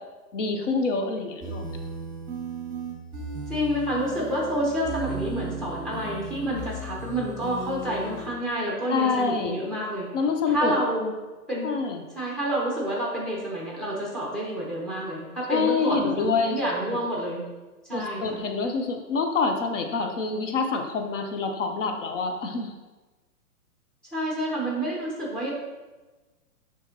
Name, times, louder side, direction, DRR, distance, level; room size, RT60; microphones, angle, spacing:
voice 1, 0.3-1.7 8.9-9.6 10.1-10.7 11.6-12.0 15.5-16.6 17.9-22.7, left 4 dB, 55° left, 4 dB, 0.8 m, -26 dB
sound 1, 1.4-8.3, right 3 dB, 15° right, 1.7 m, -36 dB
voice 2, 3.5-10.1 10.5-11.1 11.5-11.7 12.1-17.4 17.8-18.4 24.1-25.5, right 1 dB, ahead, -4 dB, 0.9 m, -29 dB
9.9 x 3.6 x 2.9 m, 1.2 s
hypercardioid pair, 145°, 45 cm